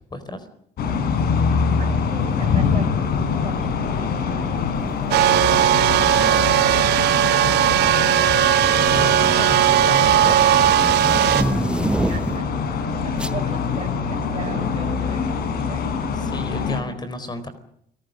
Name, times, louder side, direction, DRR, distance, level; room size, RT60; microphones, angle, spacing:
voice 1, 0.1-0.5 8.9-10.4 16.1-17.5, left 1 dB, 25° left, 12 dB, 4.2 m, -32 dB
sound 1, 0.8-16.8, left 5 dB, 65° left, 5.3 m, -24 dB
voice 2, 1.8-8.5 11.9-15.9, right 4 dB, 30° right, -1 dB, 5.2 m, -39 dB
sound 2, 5.1-11.4, right 11 dB, 80° right, 3.0 m, -17 dB
sound 3, 6.2-6.5 7.5-7.9 8.3-12.6 13.2-13.4, right 1 dB, 5° right, 0.9 m, -27 dB
29.5 x 19.0 x 6.5 m, 0.72 s
cardioid pair, 110°, 17 cm